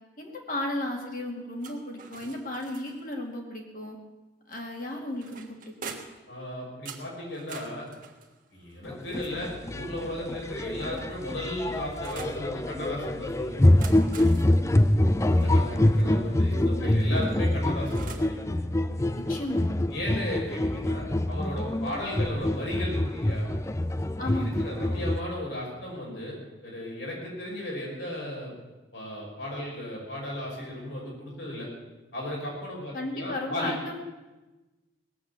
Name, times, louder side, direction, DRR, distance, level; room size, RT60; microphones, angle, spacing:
voice 1, 0.2-4.0 4.5-6.0 16.6-17.2 19.1-19.7 24.2-24.7 32.9-34.0, left 1 dB, 45° left, 0 dB, 2.4 m, -34 dB
sound 1, 1.6-3.2 4.5-6.3 6.9-9.8 10.6-12.4 13.6-16.1 17.2-18.4, right 5 dB, 45° right, 1.5 m, -46 dB
voice 2, 6.3-7.9 8.5-13.9 15.3-18.4 19.9-23.5 24.2-26.4 26.6-28.5 28.9-31.7 32.1-33.7, left 1 dB, 75° left, -3 dB, 5.9 m, -35 dB
sound 2, 8.9-25.2, left 1 dB, 15° left, 0.4 m, -25 dB
19.0 x 7.7 x 8.2 m, 1.1 s
head